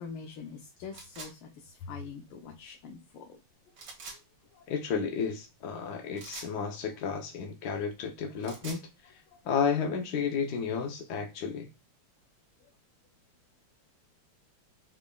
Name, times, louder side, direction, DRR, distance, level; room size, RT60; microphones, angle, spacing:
voice 1, 0.0-3.4, left 5 dB, 80° left, 1.5 m, -44 dB
sound 1, 0.9-1.3 3.7-4.2 6.2-6.5 8.2-8.8, right 4 dB, 90° right, 2.2 m, -44 dB
voice 2, 4.7-9.1 9.4-11.7, left 6 dB, 65° left, 1.0 m, -32 dB
6.0 x 3.5 x 2.2 m
omnidirectional pair, 2.4 m